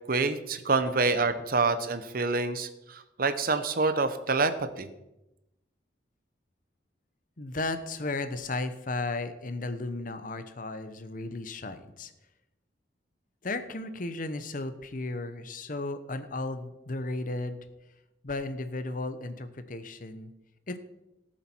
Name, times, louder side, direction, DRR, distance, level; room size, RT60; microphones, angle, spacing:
voice 1, 0.1-4.9, right 3 dB, 55° right, 11 dB, 0.9 m, -27 dB
voice 2, 7.4-12.1 13.4-17.7 18.2-20.3 20.7-20.8, left 2 dB, 50° left, 10 dB, 0.9 m, -34 dB
18.0 x 7.4 x 4.6 m, 0.93 s
head